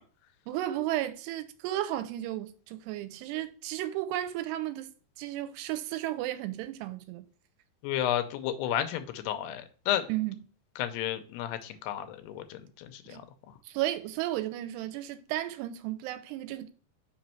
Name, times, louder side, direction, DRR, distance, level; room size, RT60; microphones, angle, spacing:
voice 1, 0.5-4.9 5.2-7.3 10.1-10.4 13.1-13.2 13.7-16.7, right 14 dB, 85° right, 2.6 m, -34 dB
voice 2, 7.8-10.1 10.8-13.2, left 11 dB, 80° left, 2.7 m, -32 dB
6.1 x 5.2 x 4.4 m
omnidirectional pair, 4.9 m